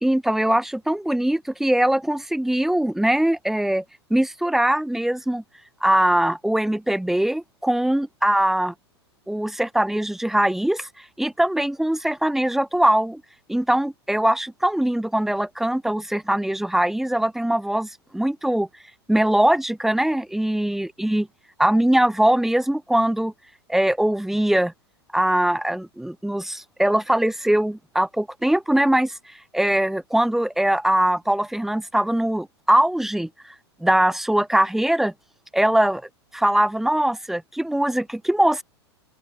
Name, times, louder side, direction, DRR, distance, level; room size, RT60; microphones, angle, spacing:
voice 1, 0.0-3.8 4.1-5.4 5.8-8.7 9.3-13.2 13.5-18.7 19.1-21.3 21.6-23.3 23.7-24.7 25.1-33.3 33.8-35.1 35.5-36.0 36.3-38.6, right 1 dB, ahead, 0.7 m, -21 dB
open air
figure-of-eight pair, 95°, 14 cm